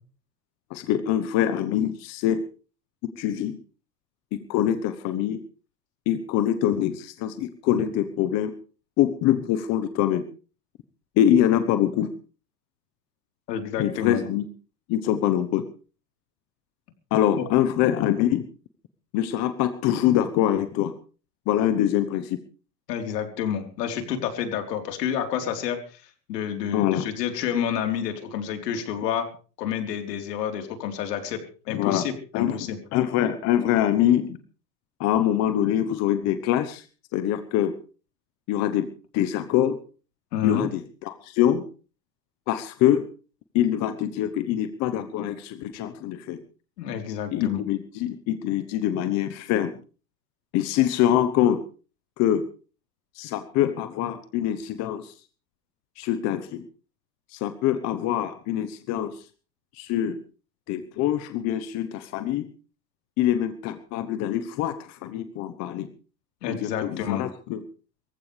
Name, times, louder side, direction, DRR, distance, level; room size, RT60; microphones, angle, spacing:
voice 1, 0.7-2.5 3.2-3.6 4.3-5.4 6.1-8.5 9.0-10.2 11.2-12.1 13.8-14.5 14.9-15.6 17.1-18.5 19.1-20.9 21.5-22.4 26.7-27.0 31.7-32.1 32.3-34.4 35.0-36.9 37.1-37.7 38.5-38.9 39.1-39.8 40.4-41.7 42.5-43.0 43.5-46.4 47.3-49.8 50.5-51.6 52.2-52.4 53.1-55.2 56.0-56.7 57.3-59.3 59.7-60.2 60.7-62.5 63.2-65.9 66.4-67.6, left 11 dB, 30° left, 11 dB, 1.1 m, -24 dB
voice 2, 13.5-14.2 22.9-29.3 29.6-31.4 31.7-32.8 40.3-40.6 46.8-47.6 66.4-67.2, left 8 dB, 70° left, 5 dB, 4.0 m, -29 dB
24.0 x 15.0 x 3.4 m, 0.37 s
supercardioid pair, 140°, 50 cm